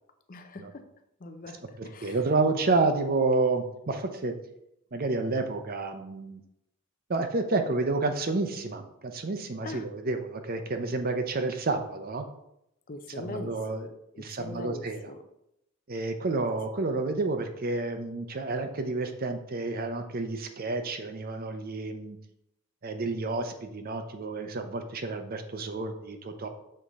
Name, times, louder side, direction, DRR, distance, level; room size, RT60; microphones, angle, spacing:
voice 1, 0.3-0.9 1.2-2.2 7.7-7.8 9.6-9.9 12.9-15.2, left 2 dB, 40° left, 7 dB, 0.6 m, -42 dB
voice 2, 2.0-4.3 4.9-6.4 7.1-12.3 13.2-13.9 14.2-15.0 15.9-22.2 22.8-26.5, right 3 dB, 45° right, 7 dB, 0.6 m, -30 dB
6.5 x 3.7 x 4.1 m, 0.81 s
head